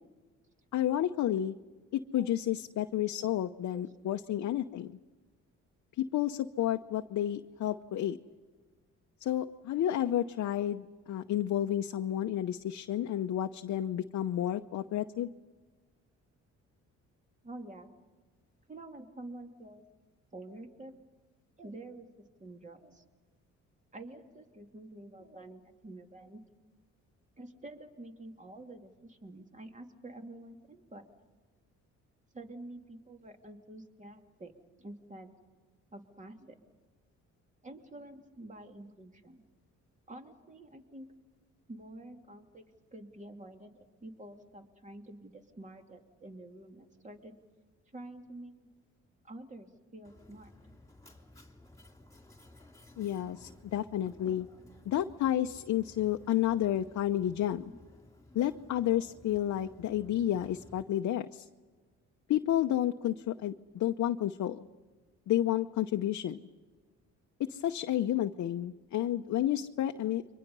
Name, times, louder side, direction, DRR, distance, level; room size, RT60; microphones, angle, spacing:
voice 1, 0.7-1.6 1.9-5.0 6.0-8.2 9.2-15.3 53.0-54.5 54.9-57.7 58.3-61.5 62.3-64.7 65.3-66.4 67.4-70.2, left 12 dB, 65° left, 5 dB, 0.8 m, -31 dB
voice 2, 17.4-17.9 18.7-19.8 20.3-20.9 21.6-22.1 22.4-23.0 23.9-26.4 27.4-31.0 32.3-34.5 34.8-35.3 35.9-36.6 37.6-39.4 40.1-41.1 41.7-42.6 42.9-47.4 47.9-48.7 49.2-50.5, right 1 dB, 25° right, 4 dB, 2.6 m, -48 dB
Mechanisms, 50.0-60.8, left 2 dB, 10° left, 3.3 m, -56 dB
29.5 x 24.5 x 5.5 m, 1.3 s
cardioid pair, 90°, 30 cm